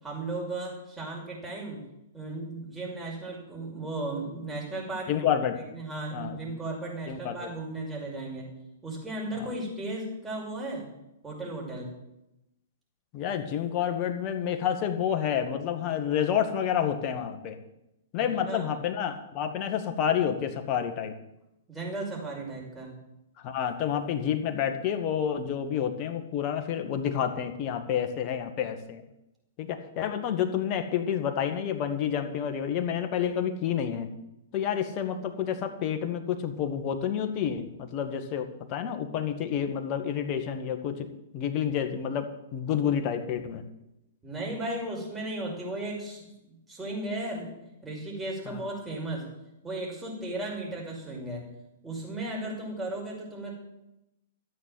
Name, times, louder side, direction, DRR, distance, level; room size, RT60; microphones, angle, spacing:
voice 1, 0.0-1.8 2.1-5.3 5.7-8.5 8.8-10.9 11.2-11.9 18.2-18.7 21.7-23.0 44.2-47.5 47.8-49.3 49.6-51.5 51.8-53.6, right 2 dB, 15° right, -2 dB, 5.7 m, -35 dB
voice 2, 5.1-5.6 6.1-6.4 7.1-7.5 9.3-9.5 13.1-17.6 18.1-21.1 23.4-29.0 29.6-34.1 34.5-41.1 41.3-43.6 48.5-48.6, left 8 dB, 40° left, 6 dB, 1.9 m, -29 dB
13.5 x 8.6 x 7.8 m, 0.88 s
figure-of-eight pair, 110°, 0 cm